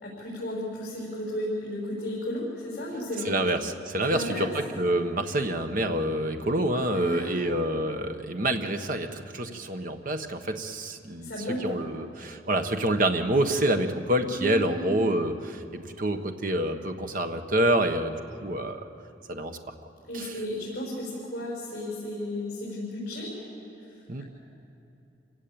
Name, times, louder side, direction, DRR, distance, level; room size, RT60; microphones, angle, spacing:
voice 1, 0.0-3.4 4.1-4.5 6.9-7.6 11.2-11.8 14.3-15.1 20.1-23.3 23.8-24.2, left 1 dB, 55° left, -6 dB, 6.1 m, -34 dB
voice 2, 3.2-11.3 11.6-18.2 18.4-18.8 19.3-19.6 20.1-20.3 24.1-24.2, right 1 dB, 50° right, 6 dB, 1.3 m, -27 dB
27.5 x 17.0 x 8.8 m, 3.0 s
head